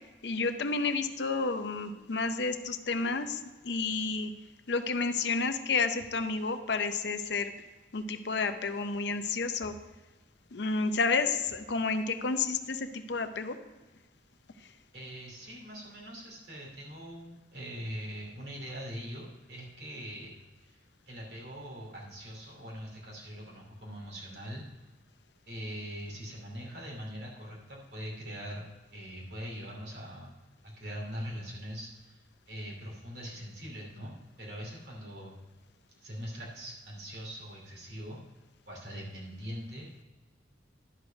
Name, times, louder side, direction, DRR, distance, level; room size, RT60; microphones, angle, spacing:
voice 1, 0.2-4.3 4.7-7.5 7.9-9.8 10.5-13.6 14.6-14.7, left 4 dB, 65° left, 9 dB, 0.6 m, -30 dB
voice 2, 14.9-20.3 20.6-24.6 25.5-28.6 28.9-30.3 30.6-35.3 36.0-38.2 38.7-40.0, equal, 55° right, -3 dB, 2.8 m, -42 dB
11.5 x 4.9 x 5.1 m, 1.2 s
head